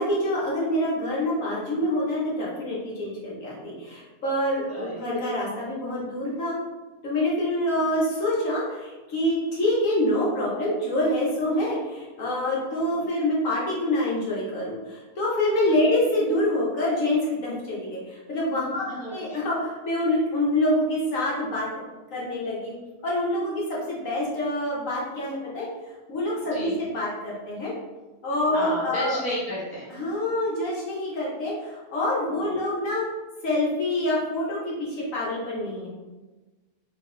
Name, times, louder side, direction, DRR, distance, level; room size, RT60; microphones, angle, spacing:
voice 1, 0.0-6.6 7.0-21.7 22.1-22.7 23.0-25.7 26.1-27.7 28.2-29.2 29.9-33.0 33.4-35.9, left 1 dB, 65° left, -5 dB, 1.2 m, -26 dB
voice 2, 4.7-5.1 12.8-12.9 15.7-15.8 18.9-19.4 26.5-26.8 28.5-29.9, equal, 5° right, -8 dB, 1.1 m, -32 dB
3.8 x 2.5 x 3.7 m, 1.2 s
omnidirectional pair, 1.5 m